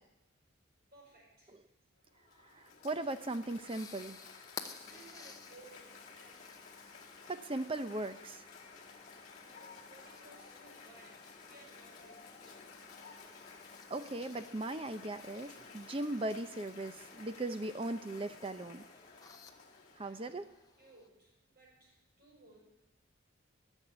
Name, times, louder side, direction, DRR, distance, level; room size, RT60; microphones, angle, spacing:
voice 1, 0.9-1.5 4.8-6.7 8.9-12.6 13.3-13.9 15.4-15.9 19.9-20.4 20.8-22.6, right 2 dB, 45° right, -6 dB, 5.9 m, -61 dB
Cheering / Applause, 2.0-20.6, left 5 dB, 35° left, 2.2 m, -55 dB
voice 2, 2.4-4.2 7.3-8.5 13.9-18.8 20.0-20.5, right 2 dB, 25° right, 11 dB, 0.6 m, -38 dB
sound 1, 3.1-21.1, left 4 dB, 15° left, 0.8 m, -55 dB
14.5 x 7.3 x 9.2 m, 0.97 s
head